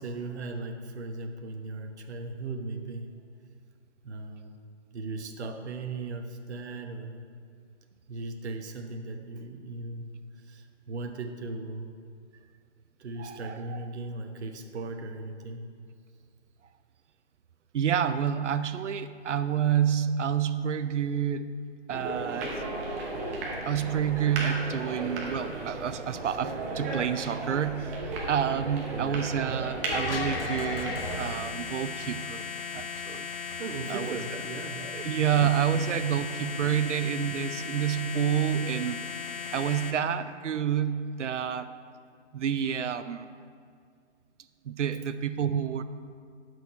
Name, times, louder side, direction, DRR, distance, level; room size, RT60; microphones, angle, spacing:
voice 1, 0.0-3.1 4.0-4.6 4.9-7.2 8.1-12.0 13.0-15.7 28.9-29.3 33.6-35.0 35.7-36.1, right 3 dB, 65° right, 5 dB, 1.0 m, -38 dB
voice 2, 13.2-13.8 17.7-21.5 21.9-22.6 22.9-33.3 33.9-34.2 34.8-39.0 39.5-41.7 42.3-43.3 44.6-45.8, right 8 dB, 80° right, 12 dB, 0.6 m, -29 dB
sound 1, 21.9-31.2, right 2 dB, 15° right, 0.8 m, -35 dB
sound 2, 29.9-39.9, left 6 dB, 55° left, 1.0 m, -36 dB
12.5 x 6.4 x 4.7 m, 2.2 s
hypercardioid pair, 160°, 35 cm